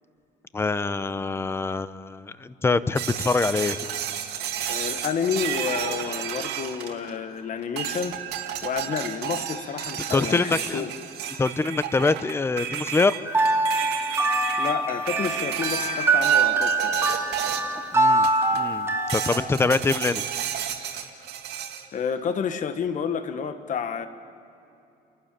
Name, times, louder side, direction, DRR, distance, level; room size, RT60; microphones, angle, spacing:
voice 1, 0.5-3.9 10.1-10.9 11.4-13.2 17.9-18.3 18.5-20.2, left 3 dB, 15° left, 15 dB, 0.7 m, -24 dB
sound 1, 3.0-7.3 7.8-17.8 18.2-18.7 19.1-21.8, right 10 dB, 75° right, 2.2 m, -32 dB
voice 2, 4.7-8.2 8.6-10.9 14.6-17.0 21.9-24.1, left 6 dB, 50° left, 9 dB, 1.4 m, -30 dB
sound 2, 13.3-19.4, right 3 dB, 15° right, 2.2 m, -23 dB
30.0 x 12.0 x 8.9 m, 2.7 s
cardioid pair, 110°, 17 cm